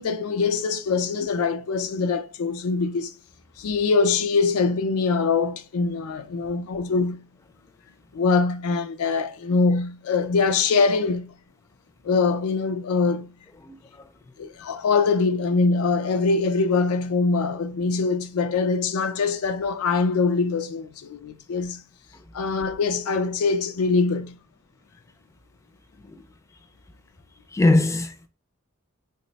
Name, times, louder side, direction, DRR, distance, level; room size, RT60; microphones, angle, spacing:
voice 1, 0.0-3.1 3.6-7.2 8.1-11.3 12.0-13.3 14.4-21.8 22.3-24.4, left 4 dB, 90° left, 0.4 m, -23 dB
voice 2, 13.6-14.1 14.4-14.5 22.1-22.2 26.0-26.3 27.5-28.3, left 2 dB, 15° left, 0.4 m, -23 dB
3.9 x 2.1 x 3.8 m
head